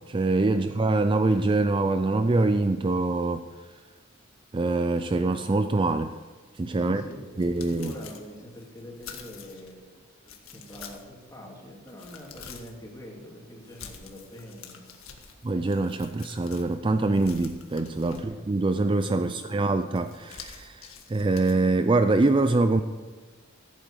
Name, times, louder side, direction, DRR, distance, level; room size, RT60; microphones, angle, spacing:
voice 1, 0.1-3.5 4.5-6.1 6.5-7.0 7.4-7.9 15.4-22.8, right 2 dB, 25° right, 9 dB, 0.4 m, -24 dB
voice 2, 6.8-14.9 18.1-18.4 19.2-19.7, equal, 15° left, -2 dB, 2.9 m, -44 dB
sound 1, 7.0-9.7 10.2-11.2 11.6-12.8 13.6-16.8 17.1-18.5 19.9-21.5, left 6 dB, 80° left, 1.7 m, -47 dB
15.0 x 8.9 x 6.6 m, 1.4 s
head